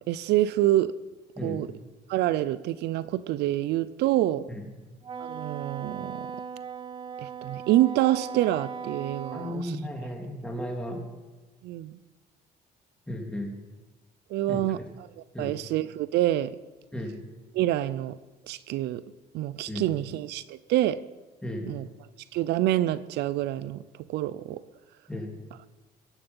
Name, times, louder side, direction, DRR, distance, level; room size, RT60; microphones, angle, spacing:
voice 1, 0.1-0.9 1.4-1.7 2.1-4.5 5.2-6.3 7.2-9.8 11.6-12.0 14.3-16.5 17.5-18.2 18.5-19.0 19.3-21.0 21.7-21.9 22.3-23.8 24.1-24.6, right 14 dB, 80° right, 16 dB, 0.6 m, -27 dB
Wind instrument woodwind instrument, 5.0-9.6, right 6 dB, 30° right, 0.6 m, -38 dB
voice 2, 9.3-11.0 13.1-13.5 14.5-14.6 15.3-15.5 16.9-17.1 19.7-19.9 21.4-21.7 25.1-25.3, left 1 dB, 5° left, 1 dB, 3.1 m, -34 dB
22.0 x 10.5 x 5.5 m, 1.2 s
cardioid pair, 110°, 17 cm